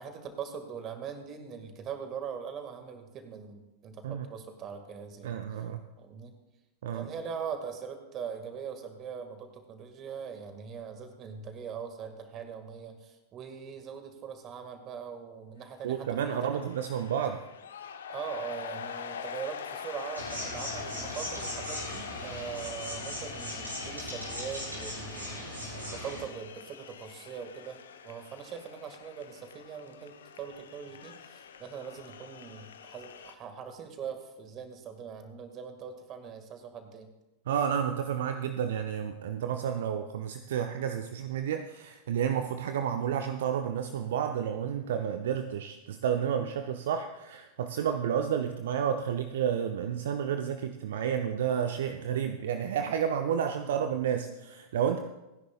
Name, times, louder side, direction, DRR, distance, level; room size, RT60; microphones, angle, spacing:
voice 1, 0.0-5.4 6.0-6.3 6.9-16.6 18.1-27.8 28.0-37.1, right 7 dB, 30° right, 7 dB, 1.9 m, -41 dB
voice 2, 5.2-5.8 6.8-7.1 15.8-17.4 37.5-55.0, right 8 dB, 60° right, 8 dB, 0.6 m, -31 dB
sound 1, 15.7-33.3, left 7 dB, 65° left, 0.9 m, -44 dB
sound 2, 20.2-26.2, equal, 85° right, 5.4 m, -39 dB
28.5 x 10.5 x 2.4 m, 1.0 s
figure-of-eight pair, 90°, 0 cm